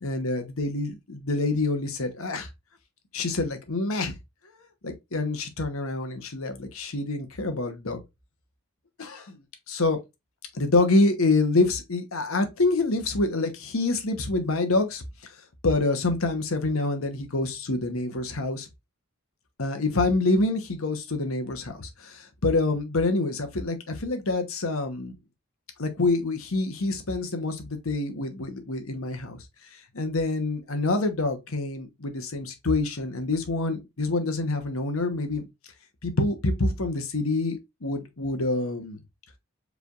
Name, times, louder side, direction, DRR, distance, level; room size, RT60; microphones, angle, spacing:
voice 1, 0.0-2.5 3.1-4.2 4.8-8.0 9.0-10.0 10.5-15.0 15.6-18.7 19.6-25.1 25.8-29.4 29.9-35.5 36.0-39.0, left 2 dB, 75° left, 1.0 m, -26 dB
4.9 x 3.4 x 2.4 m
head